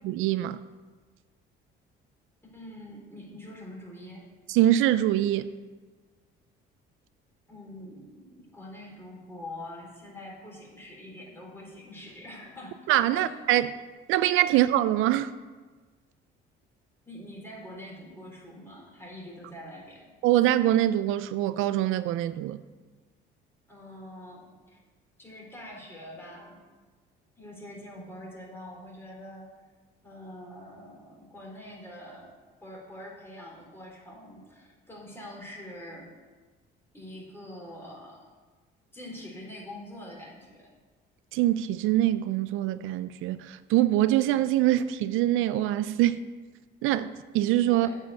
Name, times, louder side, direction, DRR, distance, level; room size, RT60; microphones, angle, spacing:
voice 1, 0.0-0.6 4.5-5.5 12.9-13.7 14.1-15.3 20.2-22.6 41.3-46.2 46.8-47.9, right 13 dB, 75° right, 14 dB, 0.4 m, -24 dB
voice 2, 2.5-4.2 7.5-12.8 13.1-13.3 17.1-20.1 23.7-24.8 25.2-26.6 27.4-29.5 30.0-32.3 32.6-36.1 36.9-38.3 38.9-40.7 47.7-48.0, left 1 dB, 10° left, -3 dB, 3.9 m, -44 dB
8.9 x 5.6 x 8.0 m, 1.4 s
cardioid pair, 95°, 21 cm